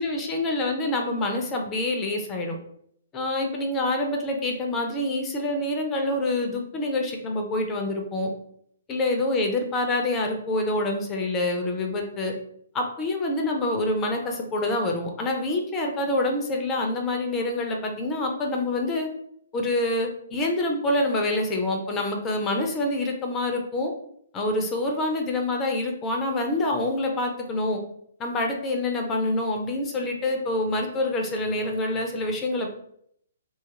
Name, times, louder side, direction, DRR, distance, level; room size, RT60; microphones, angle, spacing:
voice 1, 0.0-2.6 3.1-8.3 8.9-12.3 12.7-19.1 19.5-23.9 24.3-27.8 28.2-32.7, left 2 dB, 20° left, 2 dB, 0.5 m, -26 dB
2.8 x 2.4 x 2.8 m, 0.67 s
figure-of-eight pair, 125°, 0 cm